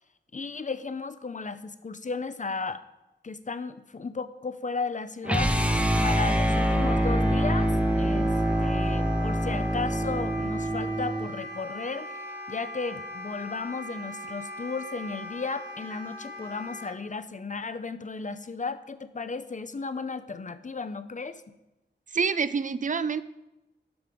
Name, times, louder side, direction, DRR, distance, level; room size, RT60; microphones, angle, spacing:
voice 1, 0.3-2.8 3.2-5.6 6.0-8.3 8.6-21.4, left 4 dB, 40° left, 12 dB, 0.6 m, -34 dB
Wind instrument woodwind instrument, 5.2-16.9, equal, 60° right, 1.4 m, -40 dB
sound 1, 5.3-11.3, equal, 5° right, 0.7 m, -25 dB
voice 2, 22.1-23.2, right 5 dB, 40° right, 14 dB, 0.4 m, -26 dB
12.0 x 4.9 x 5.2 m, 0.94 s
wide cardioid pair, 75°, 19 cm